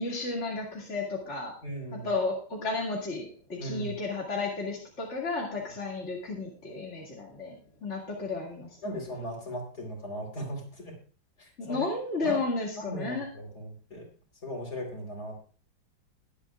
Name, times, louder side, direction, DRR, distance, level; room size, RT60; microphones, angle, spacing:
voice 1, 0.0-1.6 1.9-9.0 11.6-13.3, left 3 dB, 35° left, -3 dB, 2.5 m, -33 dB
voice 2, 1.6-2.1 3.6-3.9 8.8-11.0 11.4-11.8 12.2-12.4 12.8-14.1 14.4-15.4, equal, 50° left, 0 dB, 4.4 m, -37 dB
21.5 x 8.2 x 2.4 m, 0.41 s
omnidirectional pair, 2.2 m